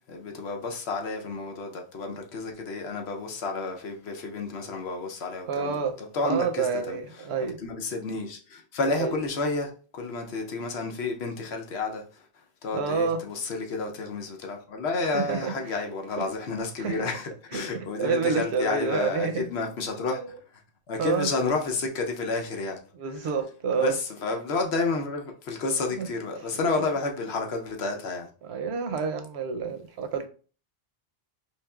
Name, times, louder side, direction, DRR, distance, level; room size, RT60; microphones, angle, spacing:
voice 1, 0.1-7.3 7.6-12.3 12.6-20.2 20.9-22.8 23.7-28.3, left 3 dB, 80° left, 1.0 m, -30 dB
voice 2, 5.5-7.6 8.9-9.1 12.7-13.2 15.0-16.3 16.8-17.1 17.5-17.7 18.0-19.5 20.1-20.3 21.0-21.3 22.9-24.0 25.9-26.1 26.4-26.5 26.8-26.9 28.4-30.3, right 5 dB, 90° right, 0.9 m, -29 dB
4.3 x 3.2 x 2.3 m
omnidirectional pair, 1.1 m